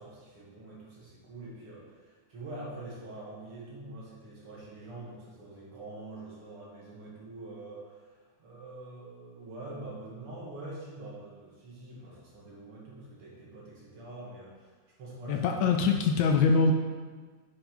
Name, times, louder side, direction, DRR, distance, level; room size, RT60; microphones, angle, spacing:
voice 1, 0.0-16.1, right 2 dB, 50° right, -6 dB, 2.5 m, -45 dB
voice 2, 15.3-16.7, left 5 dB, 75° left, 4 dB, 1.9 m, -23 dB
7.5 x 5.7 x 5.2 m, 1.4 s
omnidirectional pair, 3.4 m